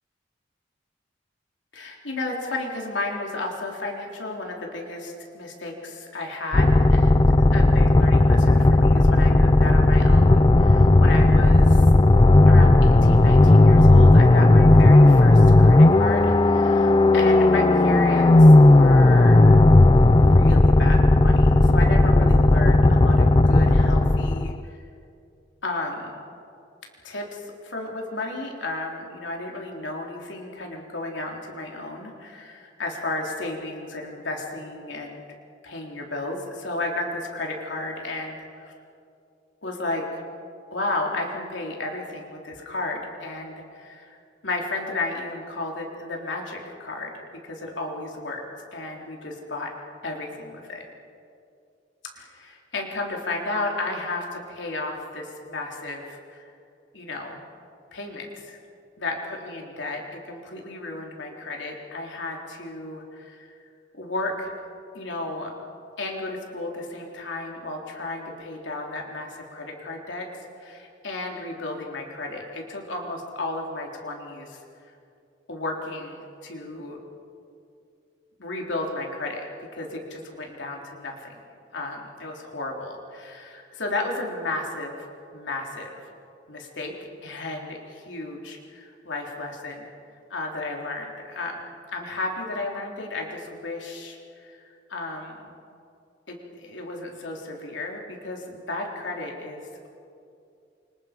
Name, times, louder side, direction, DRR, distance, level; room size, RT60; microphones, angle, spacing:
voice 1, 1.7-11.9 12.5-19.4 20.1-24.8 25.6-26.2 27.0-35.2 35.6-38.7 39.6-40.2 40.7-44.2 44.4-47.1 47.4-48.4 48.7-49.7 50.0-50.8 52.1-56.5 56.9-57.4 57.9-58.6 59.0-63.5 63.9-64.5 64.9-65.6 66.0-70.3 70.6-74.6 75.5-77.0 78.4-81.4 81.7-85.1 85.3-85.9 86.5-89.9 90.3-91.6 91.9-94.6 94.9-95.4 96.3-99.9, left 2 dB, 75° left, 0 dB, 3.7 m, -33 dB
sound 1, 6.5-24.6, left 2 dB, 25° left, 0.5 m, -15 dB
29.0 x 25.0 x 5.3 m, 2.5 s
head